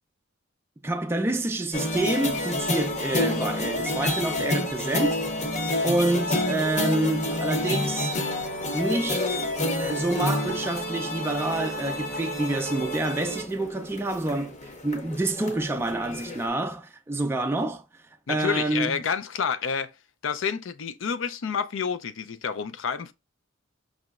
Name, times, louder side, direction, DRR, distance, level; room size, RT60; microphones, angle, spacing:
voice 1, 0.8-5.2 5.8-8.2 8.7-17.8 18.3-19.0, right 2 dB, 10° right, 0.3 m, -28 dB
sound 1, 1.7-16.5, left 1 dB, 35° left, 0.8 m, -29 dB
voice 2, 18.3-19.9 20.2-23.1, left 6 dB, 70° left, 0.5 m, -29 dB
5.3 x 2.9 x 2.4 m
head